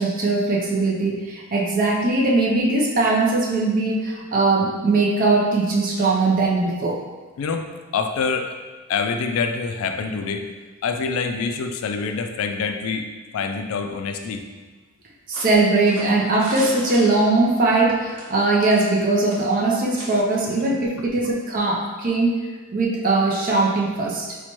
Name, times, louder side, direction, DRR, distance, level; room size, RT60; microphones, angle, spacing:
voice 1, 0.0-7.0 15.3-22.4 22.7-24.4, right 2 dB, 40° right, -3 dB, 0.5 m, -20 dB
voice 2, 7.4-7.7 7.9-8.5 8.9-10.5 10.8-14.4, left 5 dB, 75° left, 6 dB, 0.3 m, -26 dB
sound 1, 15.3-17.6 18.1-19.0 19.3-19.5 20.0-20.1, right 1 dB, 85° right, 0.8 m, -37 dB
4.3 x 2.2 x 2.9 m, 1.3 s
head